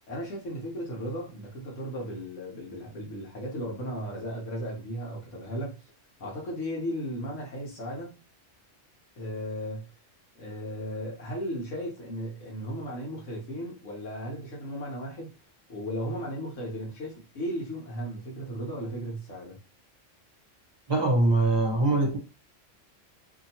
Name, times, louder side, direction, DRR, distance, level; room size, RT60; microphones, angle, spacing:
voice 1, 0.1-5.9 6.2-8.2 9.2-9.9 10.4-15.3 15.7-19.6, equal, 75° left, 1.3 m, -35 dB
voice 2, 20.9-22.2, right 2 dB, 25° right, 0.7 m, -23 dB
2.8 x 2.7 x 2.7 m
omnidirectional pair, 1.3 m